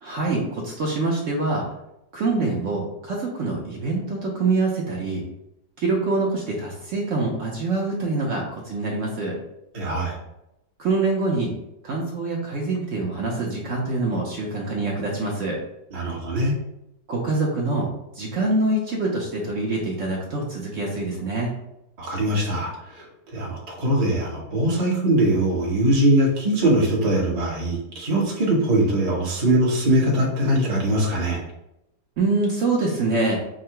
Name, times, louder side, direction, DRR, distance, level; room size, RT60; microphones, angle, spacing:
voice 1, 0.0-1.7 2.1-5.2 5.8-9.4 10.8-11.5 11.8-15.6 17.1-17.9 18.1-21.5 32.2-33.4, right 3 dB, 65° right, -2 dB, 0.8 m, -25 dB
voice 2, 9.7-10.2 15.9-16.5 22.0-23.1 23.3-31.4, right 1 dB, 30° right, -3 dB, 0.7 m, -21 dB
3.7 x 2.0 x 4.4 m, 0.85 s
omnidirectional pair, 1.9 m